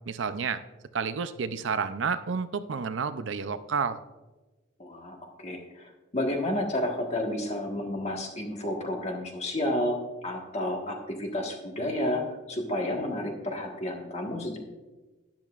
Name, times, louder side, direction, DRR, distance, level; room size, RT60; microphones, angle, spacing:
voice 1, 0.1-0.6 0.9-4.0, right 5 dB, 80° right, 12 dB, 0.5 m, -30 dB
voice 2, 4.8-10.0 10.2-12.2 12.5-14.6, left 1 dB, 35° left, 2 dB, 1.5 m, -31 dB
12.0 x 10.5 x 2.5 m, 1.2 s
head